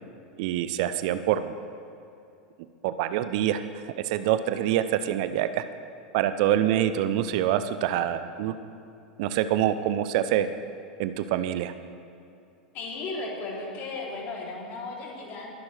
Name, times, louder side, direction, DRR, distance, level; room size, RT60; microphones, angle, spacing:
voice 1, 0.4-1.5 2.8-3.6 4.0-5.6 6.1-8.5 9.2-10.5 11.0-11.7, right 11 dB, 55° right, 12 dB, 0.6 m, -25 dB
voice 2, 12.7-15.5, left 3 dB, 45° left, -2 dB, 3.2 m, -35 dB
21.5 x 10.5 x 3.4 m, 2.6 s
figure-of-eight pair, 85°, 5 cm